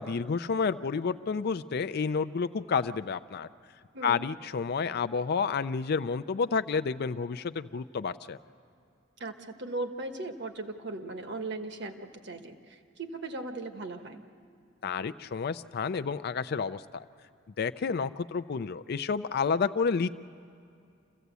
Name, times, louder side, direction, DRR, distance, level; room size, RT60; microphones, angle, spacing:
voice 1, 0.0-3.5 4.0-8.4 14.8-17.0 17.6-20.1, left 5 dB, 55° left, 12 dB, 0.4 m, -30 dB
voice 2, 3.9-4.2 9.2-14.2, right 2 dB, 60° right, 6 dB, 1.4 m, -38 dB
27.0 x 15.5 x 8.2 m, 2.5 s
head